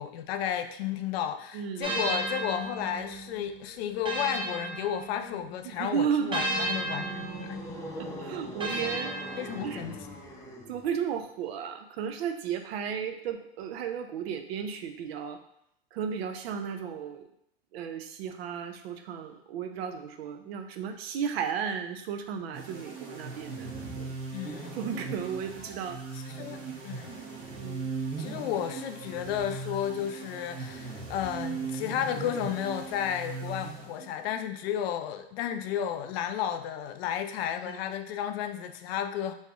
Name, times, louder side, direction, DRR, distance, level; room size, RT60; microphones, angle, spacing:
voice 1, 0.0-7.6 9.4-10.0 24.3-24.8 26.4-27.2 28.2-39.3, left 10 dB, 75° left, 8 dB, 0.5 m, -33 dB
voice 2, 1.5-2.0 5.6-6.6 7.9-9.1 9.6-9.8 10.7-15.4 15.9-17.3 17.7-24.1 24.7-26.0 27.6-27.9 37.7-37.8, right 7 dB, 75° right, 6 dB, 0.6 m, -34 dB
sound 1, 1.8-5.5 6.3-10.0, right 1 dB, 15° right, 0.8 m, -35 dB
sound 2, 6.3-10.9, equal, 10° left, 0.5 m, -42 dB
sound 3, 22.5-34.3, right 4 dB, 45° right, 1.2 m, -39 dB
3.2 x 2.7 x 3.4 m, 0.74 s
supercardioid pair, 115°, 31 cm